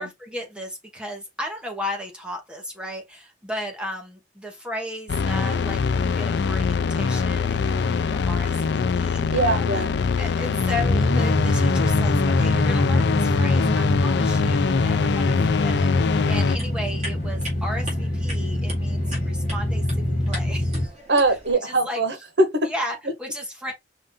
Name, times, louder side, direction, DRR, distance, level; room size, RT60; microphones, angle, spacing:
voice 1, 0.0-20.9 21.5-22.0 22.6-23.7, left 1 dB, 5° right, 1.0 m, -35 dB
sound 1, 5.1-16.6, left 5 dB, 70° left, 0.4 m, -23 dB
voice 2, 9.3-9.9 21.1-22.7, right 2 dB, 75° right, 1.4 m, -21 dB
sound 2, 10.7-20.9, left 1 dB, 45° left, 0.9 m, -25 dB
sound 3, 16.3-21.5, right 1 dB, 40° right, 2.2 m, -40 dB
5.4 x 2.6 x 3.7 m
head